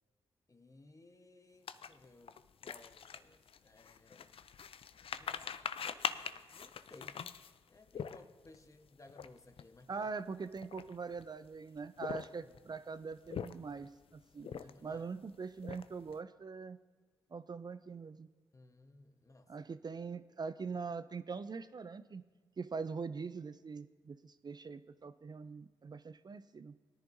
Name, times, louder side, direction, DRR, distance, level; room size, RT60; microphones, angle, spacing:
voice 1, 0.5-4.3 5.2-7.2 7.7-10.1 12.4-12.6 14.4-15.1 18.5-19.5, left 2 dB, 30° left, 7 dB, 1.1 m, -60 dB
sound 1, 1.7-8.6 9.1-9.3 9.5-9.8 10.4-11.2 11.9-12.6 13.1-13.9 14.4-15.0 15.3-16.1, left 7 dB, 60° left, 0.5 m, -43 dB
voice 2, 9.9-14.5 14.8-16.8 17.3-18.3 19.5-22.2 22.6-26.7, right 5 dB, 40° right, 13 dB, 0.4 m, -43 dB
17.5 x 10.5 x 2.7 m, 1.4 s
supercardioid pair, 40°, 11 cm